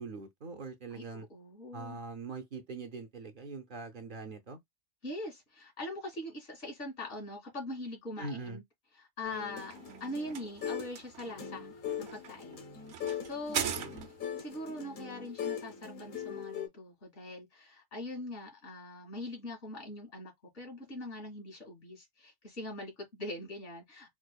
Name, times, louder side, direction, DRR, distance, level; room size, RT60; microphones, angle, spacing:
voice 1, 0.0-1.3 1.7-4.6 8.2-8.6, right 3 dB, 55° right, 0.6 m, -42 dB
voice 2, 0.9-2.0 5.0-8.6 9.0-9.8 10.0-11.7 12.0-12.6 13.2-13.8 14.3-24.1, left 1 dB, 80° left, 2.3 m, -42 dB
sound 1, 9.2-11.0 11.2-16.7, left 8 dB, 60° left, 0.9 m, -41 dB
sound 2, 9.3-14.4, right 8 dB, 80° right, 1.0 m, -40 dB
4.6 x 2.4 x 2.2 m
omnidirectional pair, 1.2 m